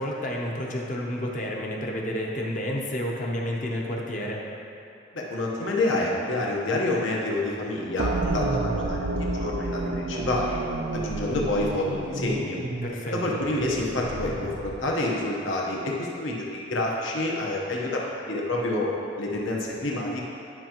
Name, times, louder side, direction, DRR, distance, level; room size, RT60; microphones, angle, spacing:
voice 1, 0.0-4.4 12.8-13.4, equal, 40° left, -2 dB, 0.8 m, -30 dB
voice 2, 5.1-10.6 10.9-12.6 13.1-18.9 19.2-20.2, left 2 dB, 75° left, -3 dB, 1.1 m, -28 dB
sound 1, 8.0-14.9, right 2 dB, 55° right, 0.5 m, -30 dB
11.0 x 5.7 x 3.0 m, 2.7 s
head